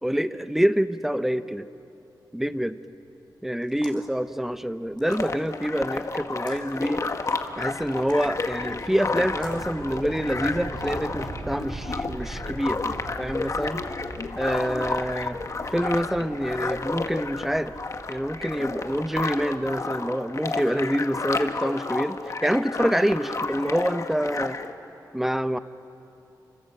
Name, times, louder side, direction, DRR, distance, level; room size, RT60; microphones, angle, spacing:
voice 1, 0.0-1.7 2.3-2.8 3.4-7.0 7.6-13.8 14.4-15.4 15.7-17.7 18.1-24.6 25.1-25.6, equal, 5° right, 12 dB, 0.8 m, -26 dB
sound 1, 3.6-4.1 5.0-5.6 6.3-6.6 7.9-8.3 9.3-9.7, left 4 dB, 85° left, 3.4 m, -44 dB
sound 2, 4.2-19.8, right 2 dB, 75° right, 6.3 m, -42 dB
sound 3, 5.1-24.7, left 3 dB, 45° left, 1.4 m, -31 dB
29.0 x 25.0 x 7.9 m, 2.9 s
wide cardioid pair, 105°, 7 cm